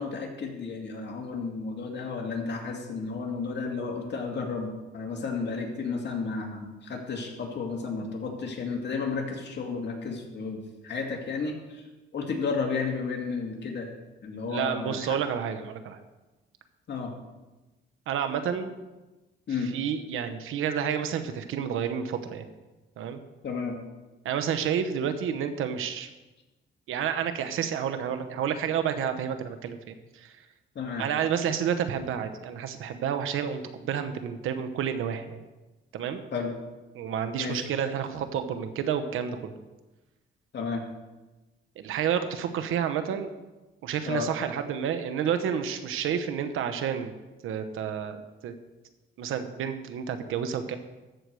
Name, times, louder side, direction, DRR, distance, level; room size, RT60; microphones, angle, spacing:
voice 1, 0.0-11.8 12.1-13.9 14.2-15.2 16.9-17.1 19.5-19.7 23.4-23.8 30.8-31.0 36.3-36.5 37.4-37.7 40.5-40.8 44.1-44.3, left 4 dB, 60° left, 1 dB, 2.3 m, -32 dB
voice 2, 14.5-16.0 18.1-18.7 19.7-22.5 23.0-23.2 24.2-26.1 26.9-30.4 31.0-35.4 35.9-36.2 36.9-39.5 41.8-43.3 43.8-47.2 47.4-48.5 49.2-50.8, right 8 dB, 85° right, 9 dB, 1.0 m, -30 dB
14.0 x 4.7 x 6.8 m, 1.1 s
cardioid pair, 95°, 21 cm